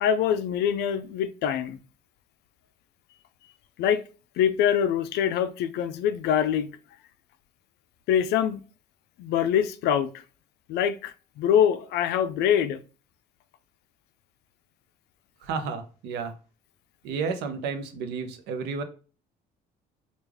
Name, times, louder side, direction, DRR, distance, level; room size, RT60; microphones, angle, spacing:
voice 1, 0.0-1.8 3.8-4.0 4.4-6.7 8.1-8.6 9.2-10.2 10.7-12.8, left 9 dB, 75° left, 0.4 m, -24 dB
voice 2, 15.4-16.3 17.0-18.8, right 5 dB, 85° right, 0.6 m, -31 dB
3.4 x 2.4 x 3.2 m
cardioid pair, 110°, 17 cm